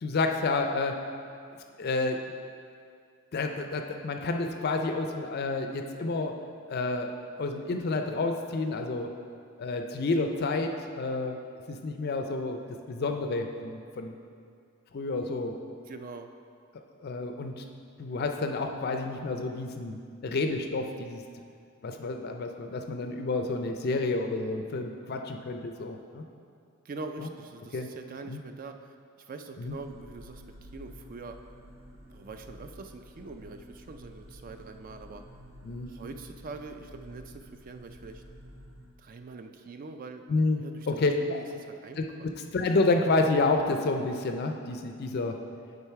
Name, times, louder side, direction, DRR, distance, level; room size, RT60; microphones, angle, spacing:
voice 1, 0.0-1.0 1.8-2.2 3.3-6.3 6.7-7.1 7.4-9.1 9.6-11.4 11.7-12.6 12.9-14.1 14.9-15.5 17.0-17.6 18.0-20.0 20.2-21.2 21.8-26.3 27.2-27.3 27.7-27.9 28.3-28.4 29.6-29.8 35.6-35.9 40.3-41.4 42.0-42.1 42.5-45.4, left 3 dB, 45° left, 5 dB, 0.4 m, -29 dB
voice 2, 15.9-16.3 26.8-28.9 29.3-31.4 32.1-35.2 35.9-38.2 39.0-40.3 40.6-40.9 41.2-41.4 41.8-42.3, right 3 dB, 40° right, 7 dB, 0.3 m, -43 dB
sound 1, 29.6-38.9, equal, 80° right, 1.1 m, -50 dB
8.7 x 3.9 x 4.6 m, 2.3 s
head